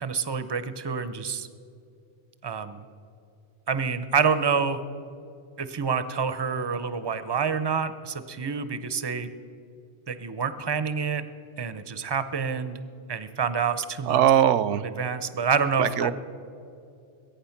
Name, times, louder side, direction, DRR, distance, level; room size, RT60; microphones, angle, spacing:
voice 1, 0.0-1.5 2.4-2.8 3.7-4.8 5.6-9.3 10.1-11.2 11.6-12.8 13.1-14.3 14.8-16.1, right 6 dB, 30° right, 12 dB, 0.5 m, -27 dB
voice 2, 14.1-14.8 15.8-16.1, right 10 dB, 80° right, 16 dB, 0.9 m, -20 dB
21.5 x 9.0 x 5.8 m, 2.6 s
omnidirectional pair, 1.3 m